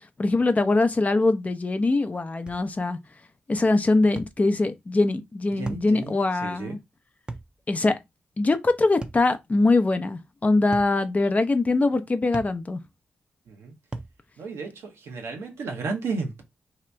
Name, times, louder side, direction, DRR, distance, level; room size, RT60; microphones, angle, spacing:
voice 1, 0.2-3.0 3.5-6.8 7.7-8.0 8.4-12.8, left 2 dB, 35° left, 0.6 m, -22 dB
sound 1, 2.5-2.7 4.2-4.4 5.7-5.9 7.3-7.5 9.0-9.3 10.7-11.0 12.3-12.6 13.9-14.2, right 2 dB, 20° right, 0.6 m, -36 dB
voice 2, 5.5-6.2 6.4-6.8 13.5-13.7 14.4-16.4, right 4 dB, 80° right, 0.8 m, -33 dB
2.8 x 2.5 x 3.3 m
supercardioid pair, 45°, 4 cm